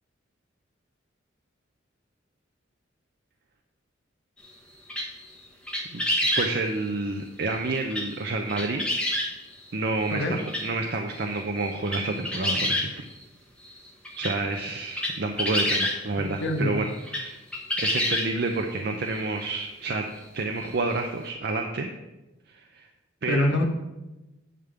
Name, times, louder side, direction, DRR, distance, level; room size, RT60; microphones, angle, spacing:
sound 1, 4.9-5.3 5.7-6.6 7.9-8.2 8.5-9.3 10.1-10.2 10.5-10.7 11.2-11.3 11.6-13.2 13.6-13.7 14.0-16.0 17.0-17.2 17.5-18.5 19.2-19.3 19.6-19.7 21.0-21.1, left 1 dB, 5° left, 1.3 m, -27 dB
voice 1, 6.4-8.8 9.7-12.9 14.2-17.4 17.8-20.1 20.3-21.9 22.5-22.9 23.2-23.6, right 3 dB, 55° right, 3 dB, 0.6 m, -29 dB
voice 2, 10.1-10.4 16.2-16.7 23.3-23.7, left 1 dB, 65° left, 1 dB, 1.1 m, -25 dB
10.0 x 3.7 x 6.9 m, 1.0 s
head